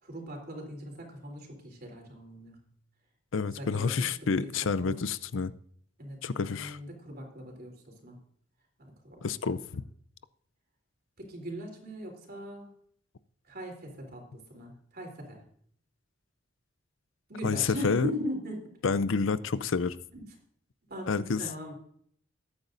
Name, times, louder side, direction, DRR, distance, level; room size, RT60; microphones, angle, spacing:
voice 1, 0.0-2.6 3.6-3.9 4.3-4.5 4.8-5.0 6.0-8.2 8.8-9.2 11.2-12.7 13.5-15.4 17.3-18.7 20.1-20.2 20.9-21.7, equal, 50° right, 3.6 m, -40 dB
voice 2, 3.3-5.5 6.2-6.8 9.2-9.8 17.4-18.1 18.8-20.0 21.1-21.4, left 5 dB, 90° left, 0.6 m, -29 dB
21.0 x 9.1 x 2.6 m
head